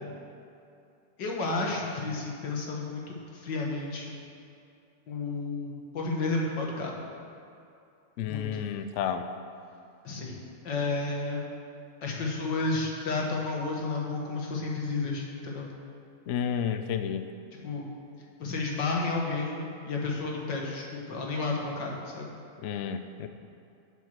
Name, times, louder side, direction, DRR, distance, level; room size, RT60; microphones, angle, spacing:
voice 1, 1.2-4.2 5.1-7.0 8.2-8.6 10.0-11.4 12.0-15.7 17.6-17.9 18.4-22.3, left 3 dB, 90° left, -1 dB, 2.1 m, -32 dB
voice 2, 8.2-9.2 16.3-17.3 22.6-23.3, left 8 dB, 70° left, 9 dB, 0.7 m, -31 dB
8.2 x 7.5 x 6.4 m, 2.5 s
omnidirectional pair, 1.9 m